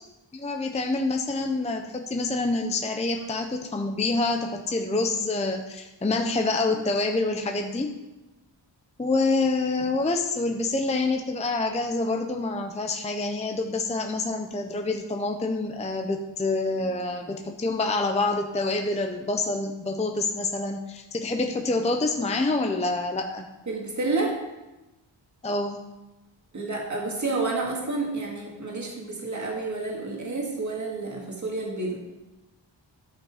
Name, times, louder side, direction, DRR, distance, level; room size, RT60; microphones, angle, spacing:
voice 1, 0.3-8.0 9.0-23.5 25.4-25.8, left 3 dB, 15° left, 4 dB, 0.6 m, -27 dB
voice 2, 23.7-24.5 26.5-32.0, right 3 dB, 40° right, -1 dB, 2.0 m, -29 dB
11.5 x 5.9 x 4.9 m, 1.0 s
wide cardioid pair, 115°, 46 cm